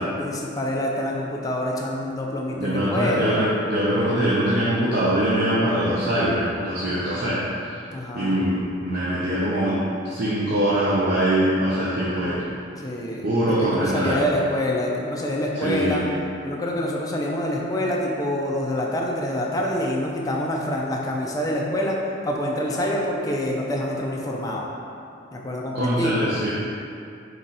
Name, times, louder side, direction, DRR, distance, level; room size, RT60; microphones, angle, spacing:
voice 1, 0.0-3.3 7.9-8.4 12.8-16.0 16.4-22.0 22.2-24.7 25.3-26.3, left 1 dB, 20° left, -2 dB, 0.5 m, -26 dB
voice 2, 2.5-7.8 8.1-12.4 13.2-14.2 15.6-16.1 25.7-26.5, right 1 dB, 55° right, -9 dB, 0.7 m, -23 dB
4.0 x 3.1 x 4.0 m, 2.5 s
head